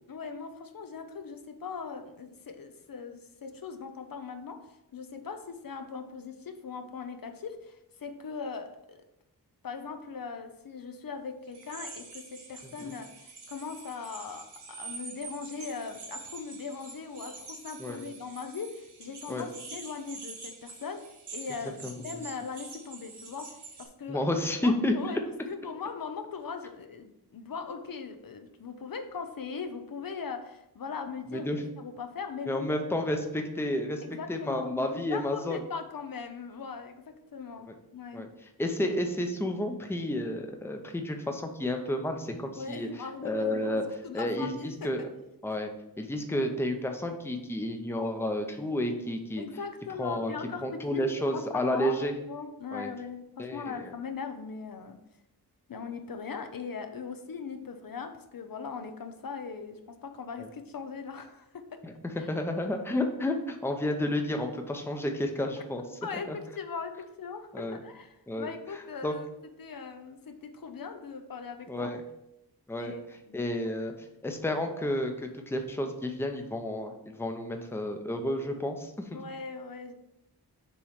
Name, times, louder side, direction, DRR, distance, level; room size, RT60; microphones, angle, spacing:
voice 1, 0.1-9.0 9.6-24.2 24.6-25.2 25.5-31.5 31.8-32.7 34.0-38.3 42.6-45.1 46.3-46.5 49.4-55.0 55.7-61.8 62.2-62.3 66.0-69.3 69.6-71.9 72.8-73.0 73.3-73.5 79.1-79.9, left 5 dB, 60° left, 7 dB, 0.6 m, -40 dB
sound 1, 11.5-23.9, right 4 dB, 90° right, 1.3 m, -46 dB
voice 2, 21.8-22.2 24.1-24.9 31.3-31.6 32.5-34.0 34.3-35.6 38.1-38.3 38.6-42.9 43.2-43.8 44.1-45.0 45.4-45.7 46.0-49.4 50.0-50.3 50.6-52.1 52.7-52.9 53.4-53.6 61.8-61.9 62.3-65.8 66.3-66.4 67.5-67.8 68.3-68.5 69.0-69.1 71.7-72.0 72.7-72.9 73.3-73.9 74.2-79.2, left 1 dB, 5° left, 4 dB, 0.6 m, -31 dB
7.1 x 3.0 x 4.9 m, 0.86 s
wide cardioid pair, 125°, 39 cm